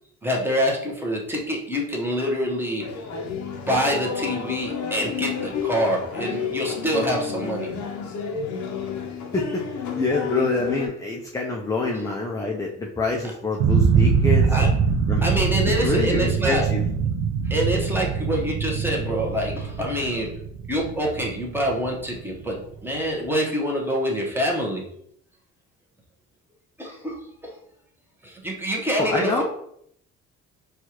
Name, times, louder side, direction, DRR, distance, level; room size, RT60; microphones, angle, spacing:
voice 1, 0.2-2.8 3.7-7.7 14.5-14.7 15.2-16.7 17.5-20.3 20.7-24.8 26.8-27.5 28.2-29.4, equal, 5° right, -2 dB, 0.9 m, -26 dB
sound 1, 2.8-10.9, left 6 dB, 85° left, 0.7 m, -31 dB
voice 2, 9.3-14.6 15.1-15.2 15.8-16.8 29.0-29.4, left 3 dB, 10° left, -1 dB, 0.4 m, -26 dB
sound 2, 13.6-22.4, right 6 dB, 80° right, 0.5 m, -23 dB
4.5 x 2.4 x 2.9 m, 0.71 s
cardioid pair, 110°, 29 cm